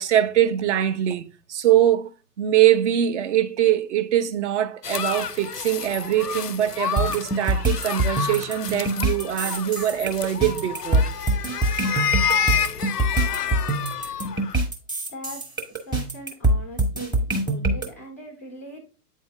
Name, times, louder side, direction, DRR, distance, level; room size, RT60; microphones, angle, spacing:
voice 1, 0.0-2.1 2.4-11.1, right 11 dB, 50° right, 0.7 m, -22 dB
sound 1, 4.8-14.6, left 7 dB, 85° left, 0.5 m, -29 dB
sound 2, 7.0-17.9, right 2 dB, 10° right, 0.8 m, -24 dB
voice 2, 15.1-15.5 15.9-17.2 17.5-18.8, left 1 dB, 10° left, 0.3 m, -40 dB
8.4 x 4.2 x 3.2 m
figure-of-eight pair, 110°, 46 cm